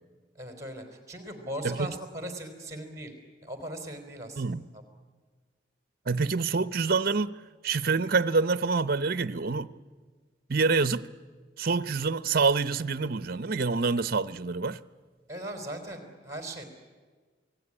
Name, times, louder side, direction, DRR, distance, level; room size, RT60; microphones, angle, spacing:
voice 1, 0.4-3.1 3.4-4.4 4.7-4.8 15.3-16.6, right 1 dB, 15° right, 3.9 m, -39 dB
voice 2, 6.1-9.7 10.5-11.1 11.6-14.8, right 4 dB, 50° right, 0.7 m, -27 dB
28.0 x 18.5 x 9.9 m
head